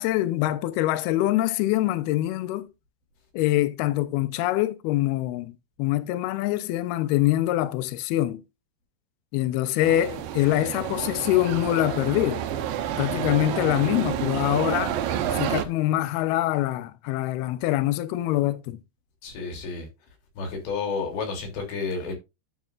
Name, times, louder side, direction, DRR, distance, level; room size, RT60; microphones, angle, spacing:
voice 1, 0.0-2.7 3.3-8.4 9.3-12.4 13.0-15.0 15.3-18.8, left 15 dB, 80° left, 2.3 m, -24 dB
sound 1, 9.8-15.7, right 10 dB, 85° right, 2.0 m, -29 dB
voice 2, 19.2-19.9 20.4-22.1, left 4 dB, 65° left, 5.3 m, -31 dB
11.5 x 7.5 x 2.5 m
omnidirectional pair, 5.5 m